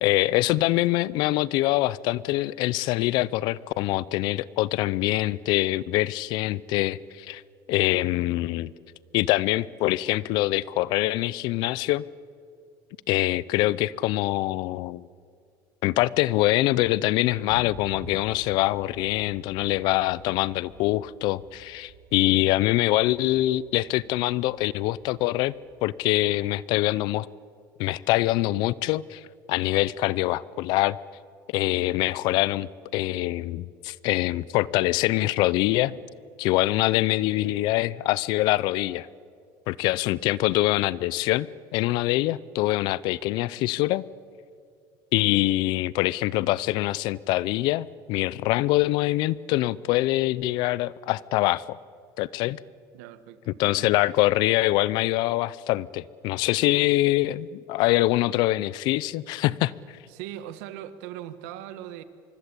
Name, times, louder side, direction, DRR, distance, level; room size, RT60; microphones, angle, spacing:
voice 1, 0.0-7.4 7.7-8.7 9.1-12.0 13.1-15.1 15.8-25.5 25.8-27.3 27.8-29.2 29.5-31.0 31.5-35.9 36.4-39.1 39.7-41.5 41.7-44.0 45.1-51.8 52.2-52.6 53.6-59.7, left 17 dB, 60° left, 0.6 m, -24 dB
sound 1, 17.5-26.7, right 4 dB, 55° right, 6.5 m, -50 dB
voice 2, 52.9-53.9 60.1-62.0, right 12 dB, 80° right, 1.5 m, -40 dB
24.5 x 24.5 x 8.4 m
cardioid pair, 155°, 9 cm